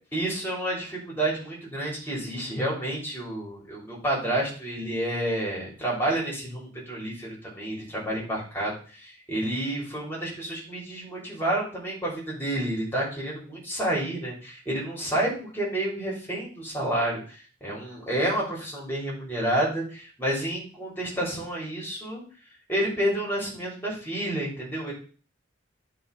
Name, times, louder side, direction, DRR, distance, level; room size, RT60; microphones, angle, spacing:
voice 1, 0.1-22.2 22.7-24.9, right 1 dB, 10° left, -4 dB, 3.5 m, -29 dB
11.0 x 4.0 x 5.4 m, 0.39 s
head